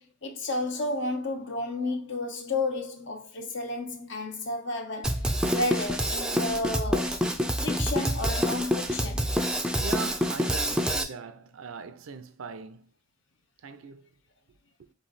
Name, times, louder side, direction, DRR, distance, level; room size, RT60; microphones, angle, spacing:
voice 1, 0.0-7.2 7.6-9.3, left 2 dB, 60° left, 0.8 m, -32 dB
Drum kit, 5.0-11.0, equal, 5° right, 0.4 m, -27 dB
voice 2, 9.8-12.9 13.6-14.1 14.8-14.9, right 5 dB, 85° right, 0.5 m, -40 dB
4.0 x 3.1 x 4.0 m
head